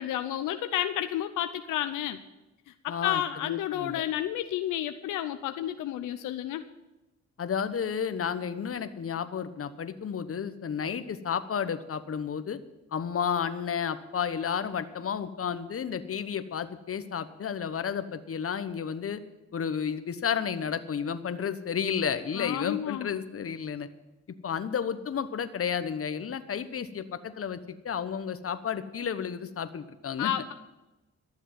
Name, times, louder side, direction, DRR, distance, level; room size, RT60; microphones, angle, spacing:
voice 1, 0.0-2.2 2.7-6.6 22.4-23.2 30.2-30.5, left 12 dB, 85° left, 9 dB, 0.7 m, -31 dB
voice 2, 2.9-4.0 7.4-12.6 12.9-19.2 19.5-23.9 24.4-30.3, left 7 dB, 50° left, 12 dB, 1.1 m, -32 dB
12.5 x 7.2 x 9.4 m, 1.0 s
supercardioid pair, 60°, 30 cm